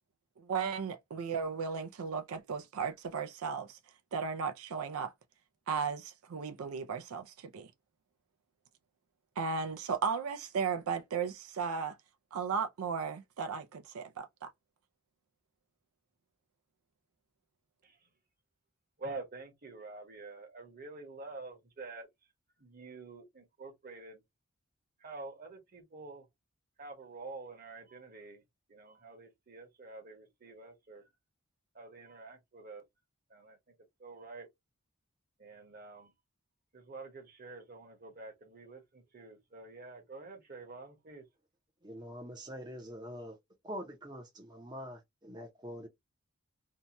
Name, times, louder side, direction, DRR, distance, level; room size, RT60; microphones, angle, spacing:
voice 1, 0.4-3.8 4.1-5.1 5.7-7.7 9.4-12.0 12.3-14.5, right 5 dB, 85° right, 0.4 m, -35 dB
voice 2, 19.0-22.1 22.6-24.2 25.0-26.3 26.8-28.4 28.7-31.1 31.7-32.8 33.3-33.6 34.0-34.5 35.4-36.1 36.7-41.3, right 3 dB, 45° right, 1.0 m, -48 dB
voice 3, 41.8-43.4 43.6-45.9, equal, 20° right, 0.6 m, -44 dB
2.7 x 2.2 x 2.8 m
head